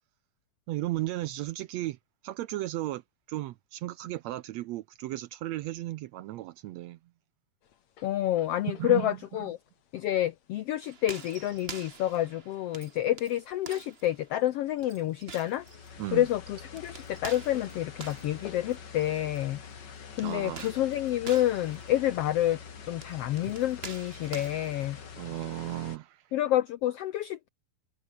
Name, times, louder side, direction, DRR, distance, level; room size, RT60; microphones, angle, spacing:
voice 1, 0.7-2.0 2.2-3.0 3.3-7.0 8.7-9.1 9.4-9.5 16.0-16.3 20.2-20.7 25.2-26.3, right 16 dB, 75° right, 1.6 m, -35 dB
sound 1, 7.6-18.8, left 9 dB, 60° left, 3.1 m, -57 dB
voice 2, 8.0-9.6 9.9-15.7 16.1-19.6 20.2-22.6 22.8-25.0 26.3-27.5, left 13 dB, 80° left, 1.3 m, -28 dB
sound 2, 10.8-19.4 20.4-25.1, right 5 dB, 40° right, 0.8 m, -47 dB
sound 3, 15.5-26.0, left 6 dB, 40° left, 2.1 m, -46 dB
omnidirectional pair, 3.6 m